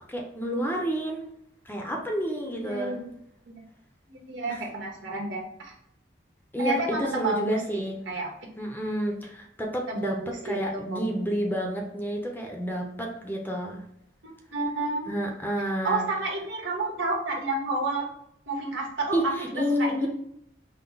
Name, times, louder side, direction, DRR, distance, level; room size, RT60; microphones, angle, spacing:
voice 1, 0.1-1.3 1.6-3.0 4.5-4.6 6.5-8.0 8.6-10.2 10.4-13.8 15.1-16.1 19.1-20.1, equal, 10° left, 1 dB, 0.6 m, -30 dB
voice 2, 2.5-3.1 3.5-3.6 4.1-5.7 6.6-8.3 9.9-10.6 10.9-11.1 14.2-15.1 15.8-18.1 18.5-20.1, right 2 dB, 90° right, -1 dB, 1.3 m, -30 dB
5.7 x 2.1 x 3.9 m, 0.76 s
head